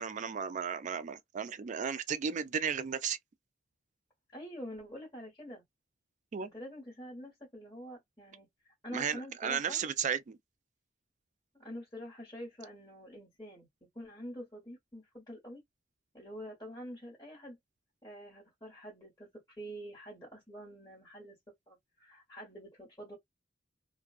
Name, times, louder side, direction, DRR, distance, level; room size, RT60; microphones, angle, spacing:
voice 1, 0.0-3.2 6.3-6.5 8.9-10.4, right 7 dB, 40° right, 0.3 m, -34 dB
voice 2, 4.3-5.6 6.4-9.8 11.5-13.7 13.9-15.6 16.1-17.6 18.0-21.4 21.7-23.2, equal, 20° left, 1.3 m, -46 dB
2.3 x 2.2 x 2.4 m
head